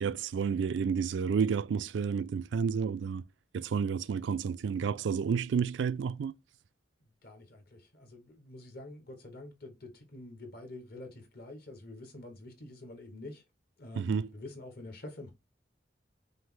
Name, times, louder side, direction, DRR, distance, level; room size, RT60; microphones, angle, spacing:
voice 1, 0.0-3.2 3.5-6.3 13.9-14.3, right 6 dB, 80° right, 0.3 m, -30 dB
voice 2, 7.0-13.4 13.8-15.3, left 2 dB, 60° left, 1.2 m, -47 dB
5.3 x 2.1 x 3.7 m
head